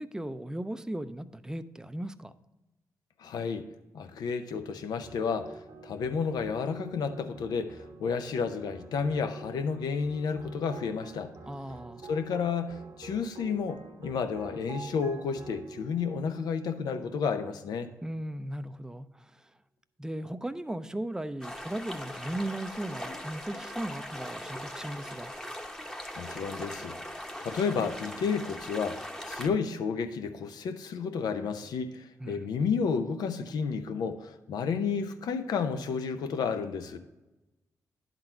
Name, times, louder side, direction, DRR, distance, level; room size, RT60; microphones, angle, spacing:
voice 1, 0.0-2.3 11.5-12.0 18.0-19.5 20.0-25.3 32.2-32.5, right 1 dB, 10° right, 12 dB, 0.5 m, -37 dB
voice 2, 3.2-3.7 3.9-11.3 12.1-17.9 26.2-27.0 27.4-37.0, left 5 dB, 80° left, 8 dB, 0.6 m, -31 dB
sound 1, 5.0-17.5, right 4 dB, 65° right, 0.9 m, -48 dB
sound 2, 21.4-29.5, equal, 10° left, 0.9 m, -40 dB
10.5 x 4.0 x 4.4 m, 1.0 s
supercardioid pair, 55°, 7 cm